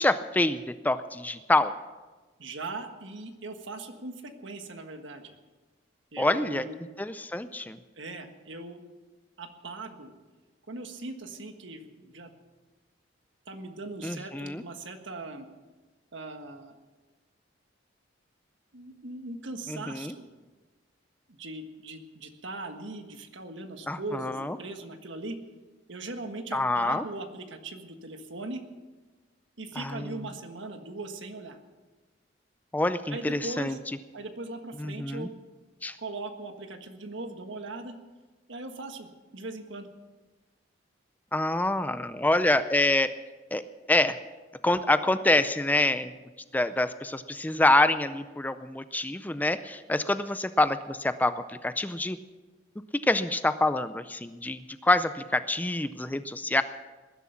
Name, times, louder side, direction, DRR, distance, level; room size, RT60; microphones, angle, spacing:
voice 1, 0.0-1.7 6.2-6.7 7.0-7.8 14.0-14.6 19.7-20.1 23.9-24.6 26.5-27.0 29.8-30.2 32.7-33.8 34.8-35.3 35.8-36.0 41.3-43.1 43.5-44.2 44.6-46.1 46.5-52.2 53.0-56.6, left 2 dB, 10° left, 12 dB, 0.4 m, -26 dB
voice 2, 2.4-5.3 6.1-6.8 8.0-8.8 9.4-10.1 10.7-12.3 13.5-15.5 16.1-16.7 18.7-20.3 21.3-25.4 25.9-28.6 29.6-31.6 33.1-33.8 34.1-35.3 36.0-37.9 38.5-39.9, right 2 dB, 75° right, 6 dB, 1.5 m, -39 dB
19.5 x 11.0 x 5.9 m, 1.3 s
head